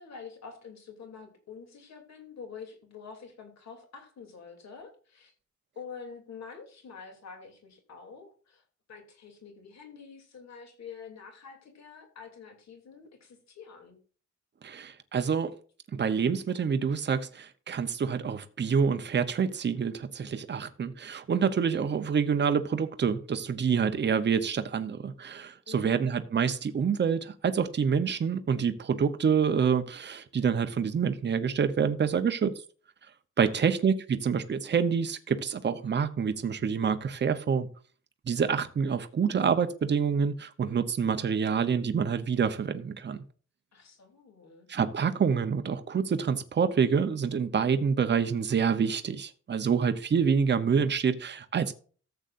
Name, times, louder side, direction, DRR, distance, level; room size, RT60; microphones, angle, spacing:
voice 1, 0.0-5.3 5.7-8.6 8.9-14.0 25.6-26.1 33.4-33.7 43.7-44.7, left 5 dB, 65° left, 3 dB, 3.0 m, -47 dB
voice 2, 14.6-15.5 15.9-32.5 33.4-37.7 38.3-43.2 44.7-51.7, right 6 dB, 35° right, 10 dB, 0.8 m, -27 dB
14.0 x 8.0 x 2.6 m, 0.39 s
wide cardioid pair, 165°, 29 cm